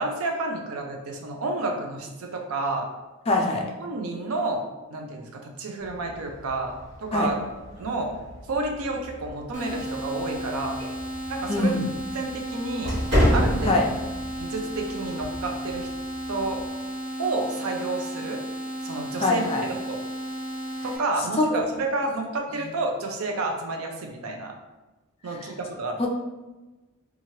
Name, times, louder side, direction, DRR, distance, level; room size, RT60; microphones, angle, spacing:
voice 1, 0.0-2.9 3.8-4.6 4.9-6.7 7.0-7.4 7.8-8.1 8.5-10.8 11.3-11.7 12.1-12.9 13.3-13.8 14.4-15.9 16.3-16.6 17.2-18.4 18.8-19.4 19.7-20.0 20.8-24.5 25.2-26.1, right 2 dB, 80° right, 3 dB, 0.5 m, -30 dB
voice 2, 3.3-3.6 7.1-7.3 11.5-11.9 13.6-13.8 19.2-19.6 21.4-21.6 26.0-26.1, left 2 dB, 25° left, 1 dB, 0.3 m, -23 dB
sound 1, 5.8-16.7, equal, 55° right, 1.3 m, -31 dB
sound 2, 9.5-21.0, right 1 dB, 35° right, 0.7 m, -34 dB
3.0 x 2.4 x 2.7 m, 1.1 s
head